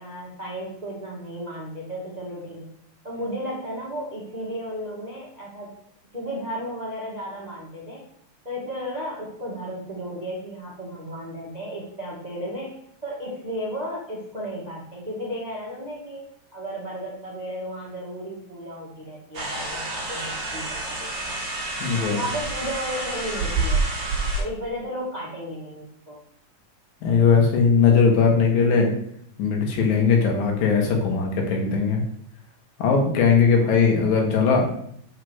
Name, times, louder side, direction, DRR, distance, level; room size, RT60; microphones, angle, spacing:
voice 1, 0.0-2.7 3.0-5.7 6.1-8.0 8.4-12.8 13.0-16.2 16.5-21.4 22.1-23.8 24.4-26.2, equal, 85° right, -4 dB, 0.3 m, -34 dB
sound 1, 19.3-24.4, right 2 dB, 50° right, 1.0 m, -28 dB
voice 2, 21.8-22.2 27.0-28.9 29.4-32.0 32.8-34.7, left 5 dB, 75° left, 1 dB, 3.2 m, -19 dB
5.9 x 4.9 x 6.1 m, 0.68 s
omnidirectional pair, 4.1 m